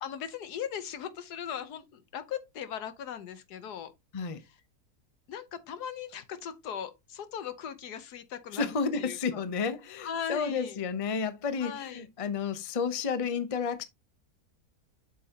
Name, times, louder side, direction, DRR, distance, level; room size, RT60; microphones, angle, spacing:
voice 1, 0.0-3.9 5.3-9.4 10.0-10.8 11.6-12.0, left 8 dB, 85° left, 1.5 m, -39 dB
voice 2, 8.5-13.8, left 5 dB, 30° left, 0.7 m, -31 dB
7.9 x 6.2 x 2.9 m
omnidirectional pair, 1.7 m